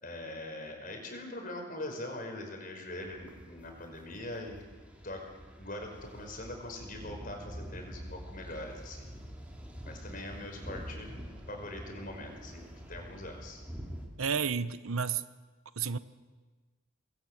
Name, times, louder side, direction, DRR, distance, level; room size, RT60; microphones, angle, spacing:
voice 1, 0.0-4.6 5.0-5.3 5.6-9.1 9.8-11.1 11.5-13.6, left 1 dB, 40° left, 3 dB, 5.5 m, -42 dB
sound 1, 3.0-14.1, equal, 5° right, 3.5 m, -46 dB
voice 2, 14.2-15.2 15.8-16.0, right 6 dB, 85° right, 13 dB, 0.9 m, -31 dB
26.0 x 21.5 x 8.0 m, 1.4 s
head